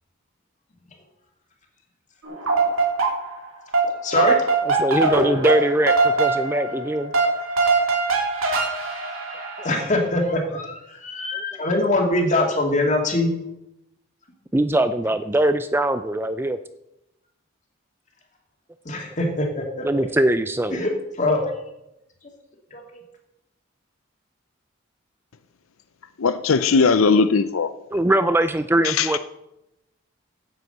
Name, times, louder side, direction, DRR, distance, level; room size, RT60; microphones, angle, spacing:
sound 1, 2.2-3.5 3.7-9.9, right 3 dB, 85° right, 2.9 m, -22 dB
voice 1, 4.0-4.4 9.4-13.3 18.8-19.8 20.7-20.9 21.2-21.5 22.7-23.0, left 2 dB, 35° left, 2.4 m, -23 dB
voice 2, 4.7-7.1 11.3-11.4 14.5-16.6 19.8-20.8 27.9-29.2, right 1 dB, 10° right, 0.4 m, -21 dB
voice 3, 26.2-27.8 28.8-29.2, left 4 dB, 85° left, 0.6 m, -19 dB
9.7 x 7.9 x 8.0 m
head